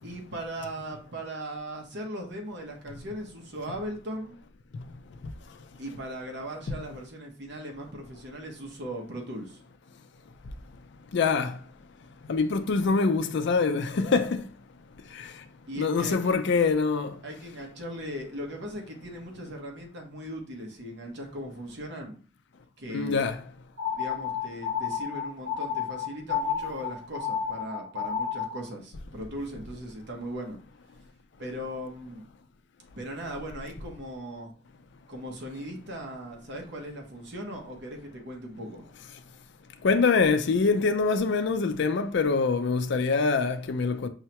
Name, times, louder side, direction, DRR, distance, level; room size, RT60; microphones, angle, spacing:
voice 1, 0.0-4.3 5.8-9.7 15.7-16.3 17.2-22.2 22.8-23.3 23.9-30.6 31.4-32.3 33.0-34.5 35.1-38.8, equal, 65° right, 1.0 m, -38 dB
voice 2, 11.1-11.6 12.3-14.4 15.2-15.3 15.7-17.1 22.9-23.4 39.8-44.1, left 4 dB, 65° left, 0.4 m, -24 dB
sound 1, 23.8-28.7, left 7 dB, 85° right, 1.3 m, -31 dB
5.5 x 2.2 x 2.9 m
head